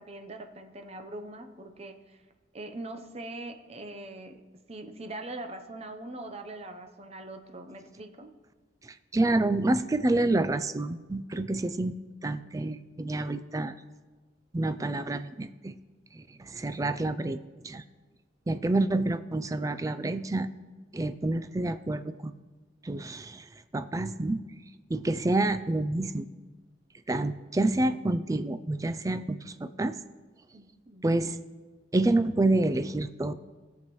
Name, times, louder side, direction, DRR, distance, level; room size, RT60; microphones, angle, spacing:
voice 1, 0.0-2.2 2.5-8.3 30.5-31.1, right 2 dB, 35° right, 5 dB, 0.7 m, -42 dB
voice 2, 8.8-11.9 12.2-13.8 14.5-15.8 16.1-17.4 17.6-17.8 18.5-20.5 20.9-22.3 22.8-23.4 23.7-24.4 24.9-26.3 27.1-30.0 31.0-31.4 31.9-33.3, right 2 dB, 15° right, 12 dB, 0.3 m, -28 dB
18.0 x 7.2 x 3.1 m, 1.3 s
head